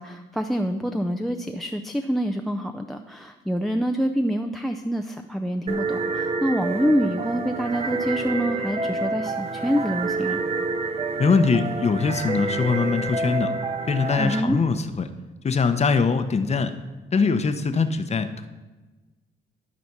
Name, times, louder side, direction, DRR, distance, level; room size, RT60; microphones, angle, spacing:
voice 1, 0.0-10.4 14.2-14.6, equal, ahead, 6 dB, 0.4 m, -26 dB
sound 1, 5.7-14.4, right 3 dB, 30° right, 0.7 m, -28 dB
voice 2, 11.2-13.5 13.9-15.1 15.4-16.7 17.1-18.5, left 4 dB, 35° left, 9 dB, 0.8 m, -22 dB
12.5 x 4.2 x 5.9 m, 1.2 s
cardioid pair, 90°, 20 cm